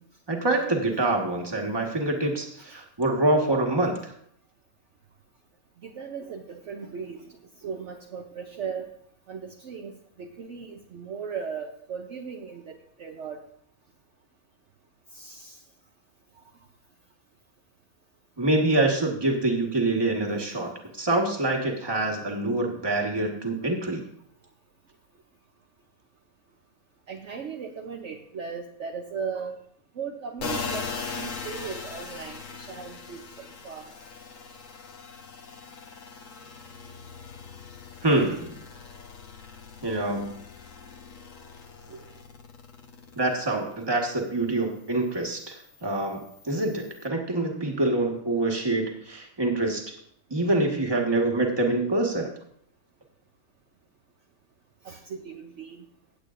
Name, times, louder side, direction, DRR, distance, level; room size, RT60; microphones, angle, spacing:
voice 1, 0.3-4.1 18.4-24.0 38.0-38.6 39.8-40.4 43.1-49.9 50.3-52.3, right 2 dB, 15° right, 1 dB, 1.5 m, -26 dB
voice 2, 5.8-7.3 7.6-8.9 9.3-13.4 15.1-15.6 20.3-20.4 27.1-29.6 29.9-30.8 31.1-33.9 41.9-42.1 54.8-55.8, right 6 dB, 60° right, 2 dB, 1.0 m, -37 dB
sound 1, 30.4-43.8 44.2-47.1, left 5 dB, 60° left, 1.4 m, -40 dB
16.5 x 8.3 x 2.5 m, 0.64 s
omnidirectional pair, 1.5 m